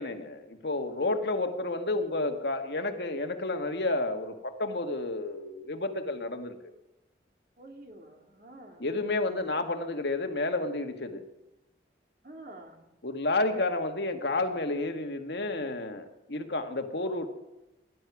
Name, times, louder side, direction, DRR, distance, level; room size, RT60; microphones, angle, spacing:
voice 1, 0.0-6.5 8.8-11.2 13.0-17.3, left 2 dB, 75° left, 6 dB, 1.6 m, -31 dB
voice 2, 7.6-8.8 12.2-12.9 13.3-13.6, right 1 dB, 50° right, 2 dB, 2.7 m, -47 dB
19.5 x 11.0 x 6.0 m, 0.96 s
head